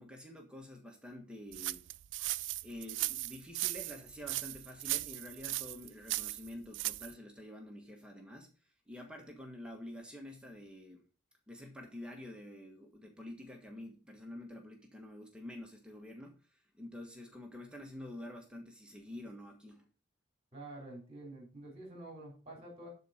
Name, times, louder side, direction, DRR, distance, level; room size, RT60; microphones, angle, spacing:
voice 1, 0.0-1.9 2.6-8.5 8.9-11.0 11.5-19.9, left 1 dB, 5° right, 1 dB, 1.4 m, -48 dB
sound 1, 1.5-7.1, right 18 dB, 70° right, 0.3 m, -37 dB
voice 2, 20.5-22.9, right 2 dB, 30° right, -2 dB, 3.6 m, -48 dB
11.5 x 4.3 x 5.0 m, 0.37 s
head